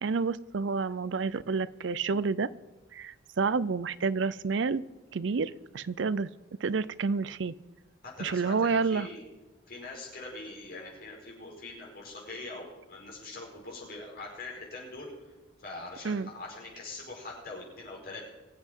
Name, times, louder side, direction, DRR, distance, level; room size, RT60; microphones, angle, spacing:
voice 1, 0.0-2.5 2.9-4.8 5.1-6.3 6.6-7.5 8.2-9.1 16.0-16.3, right 4 dB, 65° right, 18 dB, 0.5 m, -29 dB
voice 2, 8.0-9.2 9.7-15.1 15.6-18.2, left 3 dB, 50° left, -3 dB, 5.0 m, -43 dB
23.0 x 7.7 x 4.6 m, 1.2 s
head